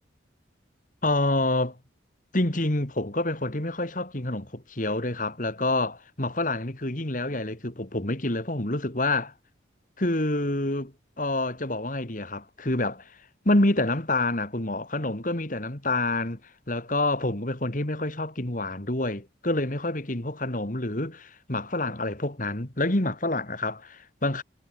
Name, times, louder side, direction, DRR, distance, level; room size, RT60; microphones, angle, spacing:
voice 1, 1.0-1.8 2.3-9.3 10.0-10.9 11.2-13.1 13.4-16.4 16.7-24.4, left 2 dB, 45° left, 2.4 m, -27 dB
head